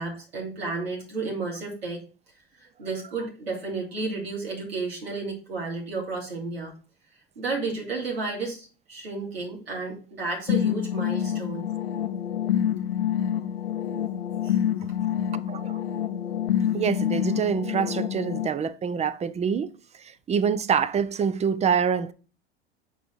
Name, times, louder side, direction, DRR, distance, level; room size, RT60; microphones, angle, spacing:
voice 1, 0.0-2.0 2.5-6.7 7.4-11.6 14.4-14.6 15.0-15.3, right 3 dB, 85° right, 3.0 m, -32 dB
sound 1, 10.5-18.5, left 10 dB, 80° left, 0.9 m, -27 dB
voice 2, 15.5-15.8 16.7-19.7 20.3-22.1, right 7 dB, 20° right, 0.6 m, -25 dB
9.1 x 4.1 x 4.7 m
hypercardioid pair, 85°, 30 cm